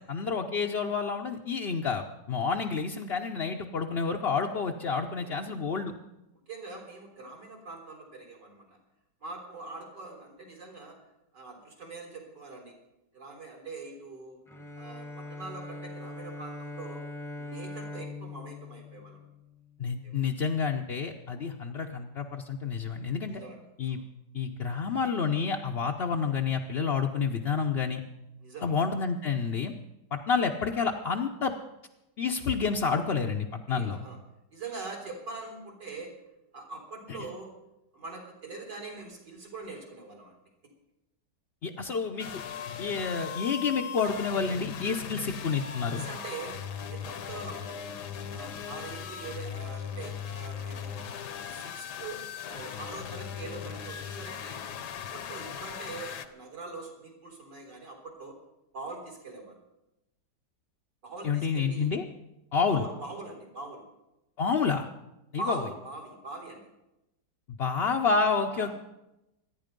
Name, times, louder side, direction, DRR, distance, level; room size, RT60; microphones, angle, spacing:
voice 1, 0.1-5.9 19.8-23.4 23.8-24.0 24.3-28.0 28.6-29.7 30.1-31.5 32.2-34.0 37.1-37.2 41.6-42.4 42.8-46.0 61.2-62.0 62.5-62.8 64.4-64.9 65.3-65.6 67.6-68.7, left 5 dB, 50° left, 1 dB, 0.7 m, -29 dB
voice 2, 5.1-5.4 6.5-8.7 9.2-11.0 11.3-12.7 13.1-14.4 14.8-17.1 17.4-19.2 20.0-20.2 23.3-23.6 23.9-24.0 28.4-28.8 33.7-34.2 34.5-36.1 36.5-37.5 37.9-40.4 45.2-45.3 45.9-46.5 46.9-47.9 48.3-51.0 51.4-54.6 55.1-58.4 58.7-59.6 61.0-61.9 62.7-63.8 65.4-66.7 68.5-68.7, right 3 dB, 70° right, 1 dB, 4.2 m, -43 dB
Bowed string instrument, 14.5-19.9, left 2 dB, ahead, 0.8 m, -42 dB
sound 1, 42.2-56.3, left 8 dB, 70° left, 1.4 m, -39 dB
25.0 x 10.0 x 5.2 m, 0.93 s
omnidirectional pair, 2.0 m